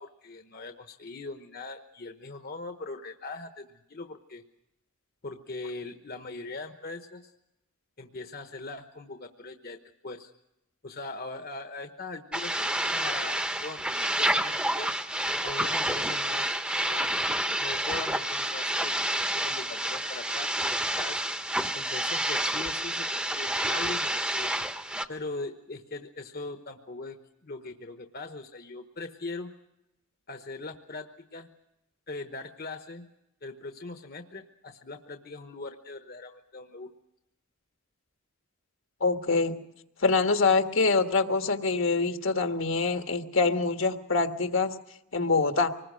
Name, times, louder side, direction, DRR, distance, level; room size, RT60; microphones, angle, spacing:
voice 1, 0.0-4.4 5.2-7.3 8.0-10.3 10.8-14.9 15.4-16.5 16.9-21.2 21.7-24.5 25.1-27.2 27.4-29.5 30.3-31.5 32.1-33.1 33.4-36.9, left 3 dB, 45° left, 6 dB, 1.1 m, -41 dB
sound 1, 12.3-25.1, right 1 dB, 5° right, 0.9 m, -29 dB
voice 2, 39.0-39.5 40.0-44.7 45.1-45.7, left 4 dB, 65° left, 6 dB, 1.5 m, -25 dB
25.0 x 20.5 x 6.3 m, 0.86 s
head